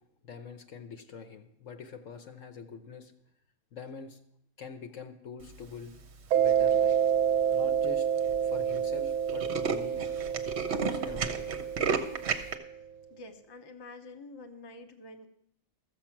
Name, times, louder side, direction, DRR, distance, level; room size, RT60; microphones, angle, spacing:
voice 1, 0.2-3.1 3.7-4.2 4.6-5.9 6.3-7.0 7.5-8.1 8.4-10.0 10.7-11.5, left 6 dB, 55° left, 7 dB, 1.2 m, -44 dB
Mallet percussion, 6.3-12.7, right 8 dB, 75° right, 1.1 m, -28 dB
Tools, 6.5-6.9 7.5-7.6 7.8-7.9 8.2-8.4 8.7-8.8 9.1-12.5, right 5 dB, 50° right, 1.0 m, -32 dB
voice 2, 13.1-15.3, left 2 dB, 25° left, 5 dB, 0.6 m, -47 dB
14.0 x 7.4 x 5.9 m, 0.74 s
omnidirectional pair, 1.7 m